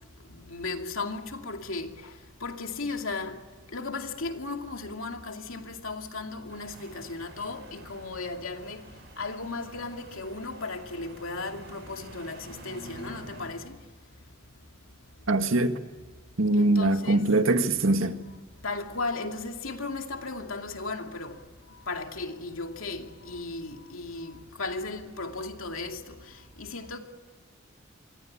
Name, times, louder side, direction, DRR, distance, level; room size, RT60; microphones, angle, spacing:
voice 1, 0.3-2.1 2.4-3.4 3.7-8.8 9.2-13.8 16.5-17.3 18.6-21.4 21.9-27.0, left 3 dB, 90° left, 2.5 m, -36 dB
sound 1, 6.5-13.5, right 1 dB, 55° right, 7.5 m, -48 dB
voice 2, 15.3-15.8 16.4-18.2, right 2 dB, 80° right, 1.8 m, -23 dB
26.0 x 24.0 x 8.7 m
head